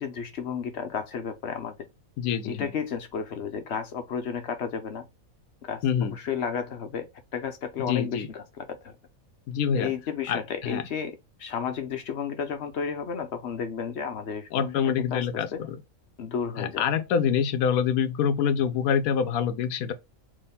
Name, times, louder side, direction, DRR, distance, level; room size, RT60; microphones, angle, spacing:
voice 1, 0.0-1.8 2.4-5.0 5.7-7.1 7.3-8.9 9.7-14.7 15.0-15.2 15.5-15.6 16.2-16.9, left 7 dB, 60° left, 0.8 m, -32 dB
voice 2, 2.2-2.7 5.8-6.1 7.9-8.3 9.5-9.9 10.3-10.8 14.5-15.8 16.6-19.9, left 7 dB, 85° left, 1.1 m, -26 dB
3.6 x 3.1 x 4.1 m
omnidirectional pair, 1.5 m